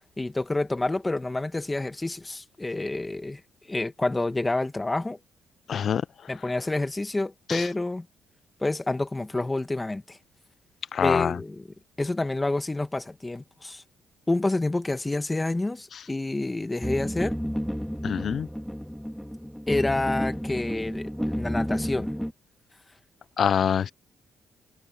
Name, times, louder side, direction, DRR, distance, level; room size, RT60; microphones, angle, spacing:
voice 1, 0.2-3.4 3.7-5.2 6.3-8.1 8.6-10.2 11.0-11.6 12.0-13.8 14.3-17.4 19.7-22.1, left 2 dB, 15° left, 1.9 m, -28 dB
voice 2, 5.7-6.0 7.5-7.6 10.9-11.4 18.0-18.5 23.4-23.9, left 8 dB, 55° left, 0.6 m, -24 dB
sound 1, 16.8-22.3, equal, ahead, 2.4 m, -31 dB
cardioid pair, 90°, 0 cm